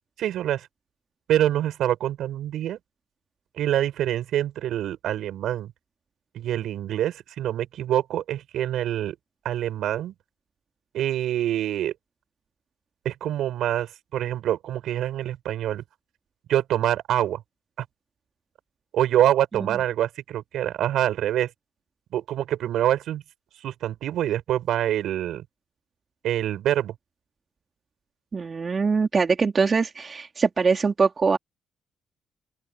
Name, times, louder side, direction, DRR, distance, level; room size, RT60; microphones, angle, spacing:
voice 1, 0.2-0.7 1.3-2.8 3.6-5.7 6.3-9.2 9.4-10.1 10.9-11.9 13.0-15.8 16.5-17.4 17.8-17.9 18.9-21.5 22.1-23.2 23.6-25.4 26.2-26.9, right 12 dB, 80° right, 7.3 m, -25 dB
voice 2, 28.3-31.4, right 5 dB, 35° right, 3.6 m, -22 dB
open air
cardioid pair, 90°, 0 cm